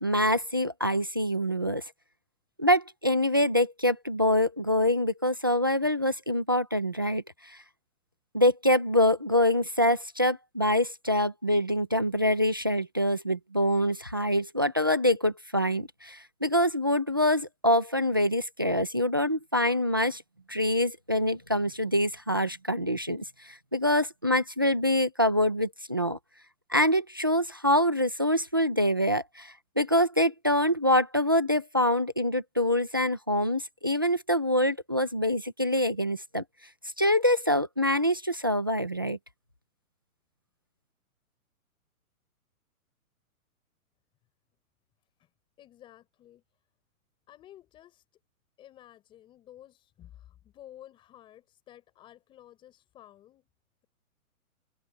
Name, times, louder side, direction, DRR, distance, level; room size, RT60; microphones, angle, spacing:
voice 1, 0.0-1.8 2.6-7.6 8.3-20.2 20.5-26.2 26.7-36.4 37.0-39.2, left 1 dB, 15° right, 0.6 m, -25 dB
voice 2, 45.6-46.4 47.3-48.0 48.6-53.5, left 12 dB, 10° left, 6.6 m, -52 dB
hypercardioid pair, 180°, 44 cm